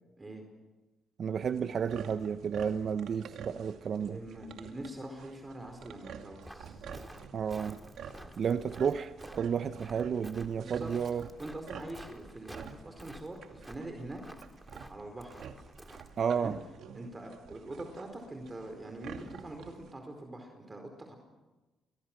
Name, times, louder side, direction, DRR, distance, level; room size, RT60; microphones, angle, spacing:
voice 1, 1.2-4.2 7.3-7.8 8.4-11.3 16.2-16.6, right 7 dB, 55° right, 10 dB, 0.9 m, -32 dB
sound 1, 1.4-19.9, right 7 dB, 75° right, 2.4 m, -49 dB
voice 2, 4.0-6.9 8.1-8.6 10.4-10.9 11.4-14.2 14.9-15.4 16.3-16.5 16.9-21.1, right 1 dB, 20° right, 4 dB, 4.7 m, -44 dB
Walk footsteps, 6.4-16.2, right 1 dB, 5° right, 2.1 m, -51 dB
29.0 x 24.0 x 6.2 m, 1.1 s
cardioid pair, 90°, 0 cm